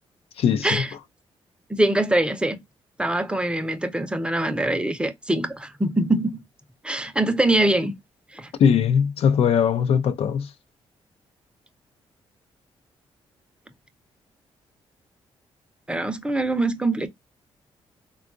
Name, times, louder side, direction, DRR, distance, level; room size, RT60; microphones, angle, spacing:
voice 1, 0.4-0.8 8.6-10.5, left 7 dB, 70° left, 0.4 m, -20 dB
voice 2, 1.7-2.6 3.0-6.4 6.8-8.0 8.3-8.5 15.9-17.1, right 1 dB, 10° right, 0.6 m, -23 dB
3.6 x 2.3 x 2.4 m
cardioid pair, 85°, 11 cm